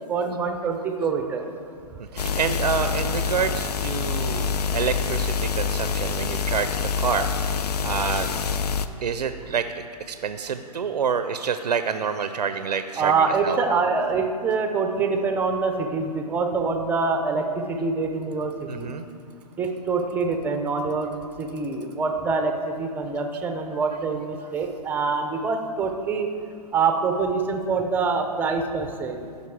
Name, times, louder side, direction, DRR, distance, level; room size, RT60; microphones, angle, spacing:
voice 1, 0.1-1.5 2.2-2.3 13.0-18.9 19.6-26.3 26.7-29.2, right 4 dB, 10° right, 5 dB, 0.6 m, -25 dB
voice 2, 2.0-7.3 7.8-8.4 9.0-9.7 10.1-13.1 13.4-13.6 18.7-19.1, right 6 dB, 90° right, 9 dB, 0.5 m, -27 dB
sound 1, 2.2-8.9, left 6 dB, 80° left, 0.5 m, -26 dB
14.0 x 5.3 x 4.7 m, 2.2 s
hypercardioid pair, 140°, 20 cm